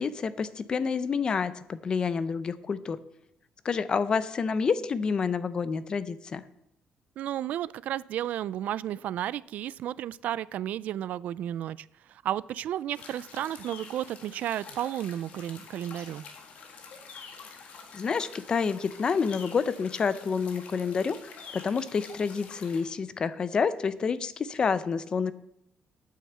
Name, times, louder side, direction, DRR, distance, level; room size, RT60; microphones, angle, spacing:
voice 1, 0.0-3.0 3.6-6.4 17.9-25.3, left 5 dB, 30° left, 14 dB, 0.6 m, -28 dB
voice 2, 7.2-16.2, right 11 dB, 60° right, 20 dB, 0.3 m, -33 dB
sound 1, 12.9-22.9, left 5 dB, 50° left, 1.7 m, -47 dB
9.4 x 6.5 x 8.0 m, 0.79 s
cardioid pair, 180°, 3 cm